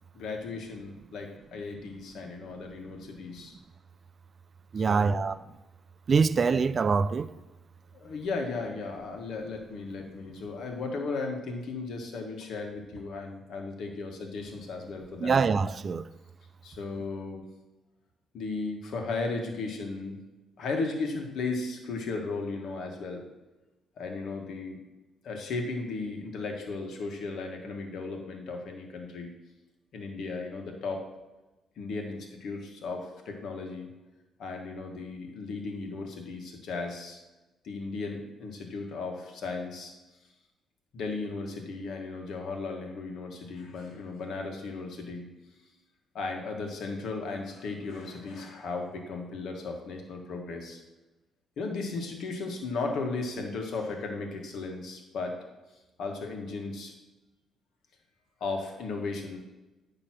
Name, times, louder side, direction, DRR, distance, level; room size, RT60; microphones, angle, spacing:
voice 1, 0.1-3.5 4.8-5.2 7.9-15.4 16.6-17.4 18.3-20.2 20.6-23.2 24.0-24.8 25.2-29.3 29.9-31.0 31.8-33.9 34.4-37.2 37.6-39.9 40.9-45.3 46.1-50.8 51.6-55.4 56.0-56.9 58.4-59.4, left 3 dB, 70° left, 1.4 m, -35 dB
voice 2, 4.7-5.3 6.1-7.3 15.2-16.0, right 5 dB, 40° right, 0.3 m, -24 dB
8.9 x 3.0 x 6.0 m
cardioid pair, 90°, 0 cm